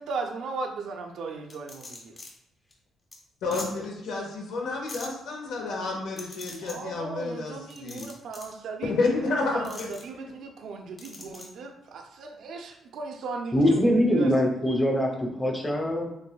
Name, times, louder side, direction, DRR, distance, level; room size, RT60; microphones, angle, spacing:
voice 1, 0.0-2.2 6.6-8.9 9.2-14.5, right 4 dB, 70° right, 4 dB, 0.6 m, -37 dB
sound 1, 1.5-2.3 2.7-2.8 3.1-3.2 3.5-3.7 4.9-5.1 6.2-6.8 7.7-8.5 9.6-10.0 11.0-11.5, left 2 dB, 30° left, 1.1 m, -41 dB
voice 2, 3.4-8.1 8.9-10.3, left 3 dB, 90° left, -1 dB, 1.3 m, -30 dB
voice 3, 13.5-16.1, equal, 10° left, 1 dB, 0.8 m, -23 dB
7.2 x 2.6 x 2.3 m, 0.86 s
cardioid pair, 130°, 0 cm